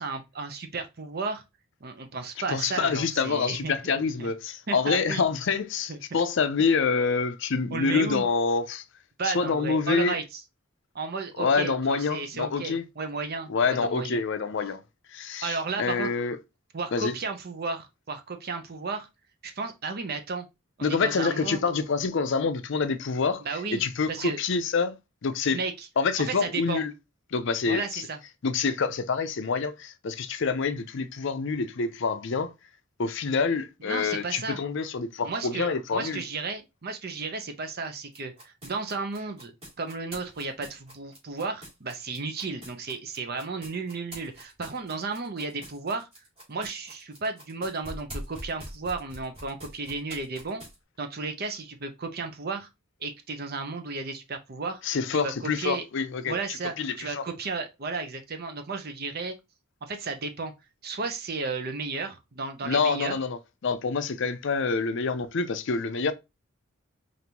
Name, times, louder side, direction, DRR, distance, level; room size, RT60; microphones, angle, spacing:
voice 1, 0.0-1.4 1.8-4.3 4.7-5.2 5.9-6.0 7.7-8.2 9.2-10.4 10.9-14.2 15.4-16.1 16.7-19.1 19.4-20.5 20.8-21.6 23.4-23.8 24.1-24.4 25.5-25.9 26.3-26.8 27.7-28.2 33.8-34.6 35.2-39.5 39.8-46.1 46.5-50.6 51.0-52.7 53.0-54.8 55.1-55.8 56.2-59.3 59.8-60.5 60.8-63.2, right 4 dB, 50° right, 0.7 m, -33 dB
voice 2, 2.5-8.8 9.2-10.2 11.4-12.8 13.5-14.8 15.1-16.4 16.9-17.1 20.8-23.4 23.7-25.0 25.2-25.6 26.0-26.9 27.3-28.1 28.4-32.5 33.0-36.2 54.8-56.4 56.8-57.2 62.6-66.1, left 5 dB, 60° left, 0.5 m, -27 dB
sound 1, 38.1-50.8, right 1 dB, 25° right, 2.2 m, -43 dB
5.1 x 2.6 x 2.9 m
head